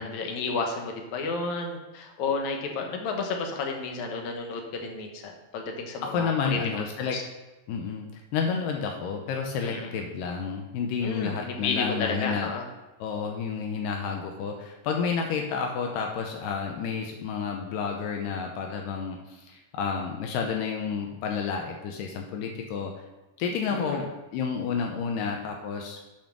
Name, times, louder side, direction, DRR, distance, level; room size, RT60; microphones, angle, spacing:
voice 1, 0.0-6.9 7.1-7.2 9.6-9.9 11.0-12.6 23.7-24.1, left 4 dB, 65° left, 2 dB, 2.3 m, -31 dB
voice 2, 6.0-7.2 7.7-12.5 13.0-22.9 23.4-24.1 24.3-26.0, left 6 dB, 85° left, 2 dB, 2.4 m, -30 dB
7.6 x 5.3 x 6.0 m, 1.1 s
omnidirectional pair, 3.9 m